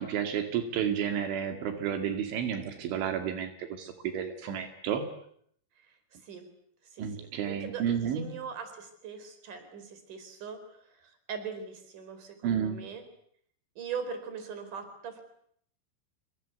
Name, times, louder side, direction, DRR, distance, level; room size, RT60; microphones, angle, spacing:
voice 1, 0.0-5.0 7.0-8.4 12.4-12.8, right 8 dB, 80° right, 6 dB, 4.6 m, -31 dB
voice 2, 6.9-10.6 11.3-13.0 13.8-15.2, right 6 dB, 45° right, 9 dB, 5.9 m, -40 dB
28.5 x 25.5 x 8.3 m, 0.68 s
omnidirectional pair, 5.4 m